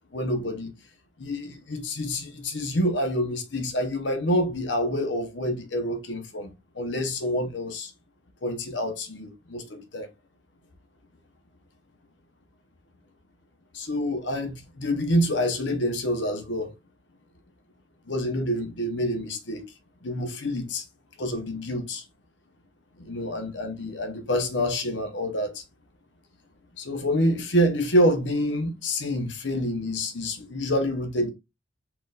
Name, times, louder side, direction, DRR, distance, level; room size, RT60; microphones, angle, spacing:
voice 1, 0.1-0.7 1.2-7.9 8.4-10.1 13.7-16.7 18.1-19.7 20.0-20.8 21.2-22.0 23.0-25.6 26.8-31.3, equal, 70° left, 1.0 m, -27 dB
4.6 x 3.9 x 2.4 m
head